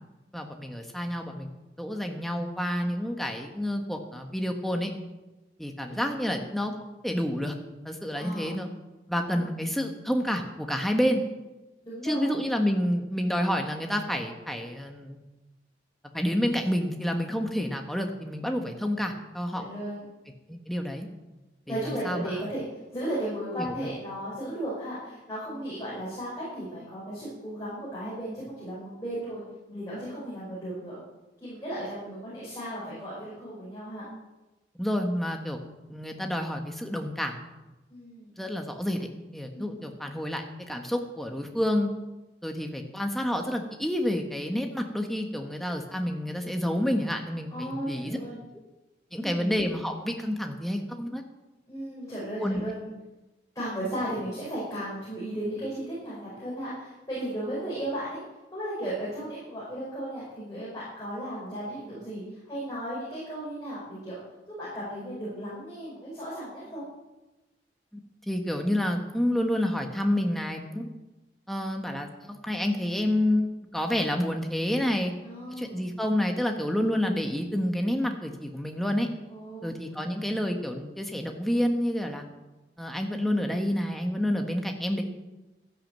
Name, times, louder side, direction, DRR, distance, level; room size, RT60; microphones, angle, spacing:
voice 1, 0.3-1.5 1.8-4.9 5.6-6.7 7.0-7.5 7.8-8.7 9.1-11.2 12.0-15.2 16.1-19.6 20.5-21.1 21.7-22.3 23.6-23.7 34.8-35.6 35.9-37.4 38.4-41.9 42.4-48.2 49.1-51.2 52.4-52.6 67.9-68.0 68.3-70.9 71.5-75.1 75.6-79.1 79.6-82.2 82.8-85.0, equal, ahead, 3 dB, 1.5 m, -29 dB
voice 2, 8.2-8.5 9.4-9.5 11.8-12.3 19.5-20.0 21.7-22.6 22.9-29.4 29.7-31.0 31.4-34.1 37.9-38.3 39.5-39.9 47.5-48.4 49.2-49.5 51.7-52.9 53.5-58.2 58.5-64.2 64.6-66.9 75.2-75.9 79.3-79.6 79.9-80.0, right 1 dB, 20° left, -9 dB, 5.7 m, -35 dB
13.0 x 11.0 x 7.5 m, 1.1 s
head